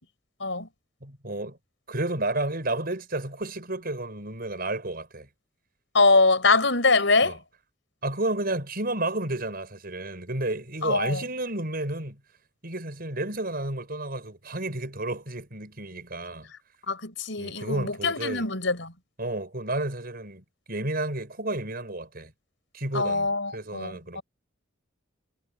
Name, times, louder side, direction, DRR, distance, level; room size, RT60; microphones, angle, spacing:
voice 1, 1.0-1.6 1.9-5.3 7.2-7.4 8.0-12.2 12.6-16.5 17.4-18.5 19.2-22.3 22.7-24.2, right 2 dB, 50° right, 6.1 m, -31 dB
voice 2, 5.9-7.4 10.8-11.2 16.9-18.9 22.9-24.2, left 3 dB, 70° left, 6.5 m, -23 dB
head